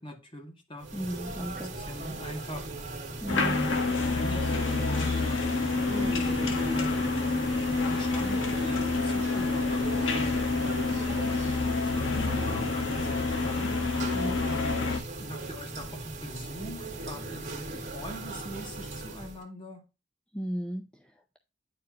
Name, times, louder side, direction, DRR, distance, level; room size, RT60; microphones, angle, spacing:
voice 1, 0.0-1.2 1.6-2.9 3.3-3.8 4.0-7.1 7.9-14.1 14.4-19.8, equal, 30° left, 2.0 m, -42 dB
sound 1, 0.8-19.4, right 2 dB, 40° right, 1.8 m, -38 dB
voice 2, 0.9-1.8 3.2-3.6 5.9-6.2 14.1-14.4 20.3-21.4, equal, 5° left, 0.5 m, -35 dB
sound 2, 3.3-15.0, left 3 dB, 90° left, 1.2 m, -28 dB
9.6 x 4.6 x 2.8 m
head